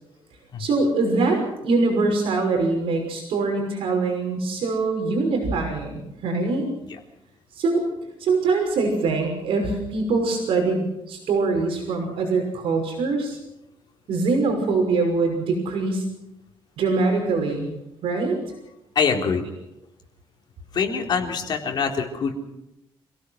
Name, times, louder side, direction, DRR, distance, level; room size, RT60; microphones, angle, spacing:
voice 1, 0.6-6.7 7.5-7.8 8.2-13.4 14.1-16.0 16.8-17.7 18.0-18.4, right 3 dB, 75° right, 2 dB, 5.9 m, -23 dB
voice 2, 19.0-19.7 20.7-22.3, left 6 dB, 50° left, 2 dB, 3.9 m, -24 dB
27.5 x 17.0 x 6.5 m, 0.88 s
cardioid pair, 160°, 9 cm